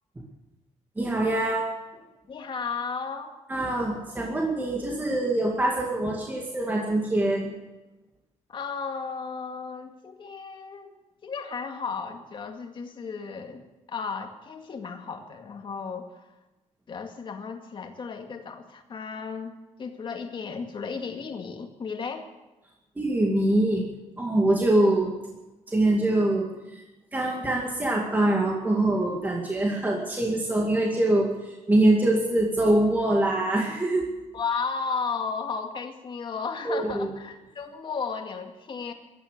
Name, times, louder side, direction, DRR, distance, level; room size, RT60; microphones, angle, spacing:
voice 1, 1.0-1.6 3.5-7.5 23.0-23.8 24.2-25.1 25.7-26.8 27.1-34.1 36.6-37.1, right 1 dB, 15° right, -1 dB, 2.2 m, -24 dB
voice 2, 2.3-3.4 8.5-10.9 11.2-13.6 13.9-16.1 16.9-19.5 19.8-22.3 34.3-38.9, left 5 dB, 40° left, 5 dB, 2.1 m, -34 dB
16.5 x 12.5 x 6.7 m, 1.1 s
cardioid pair, 130°, 12 cm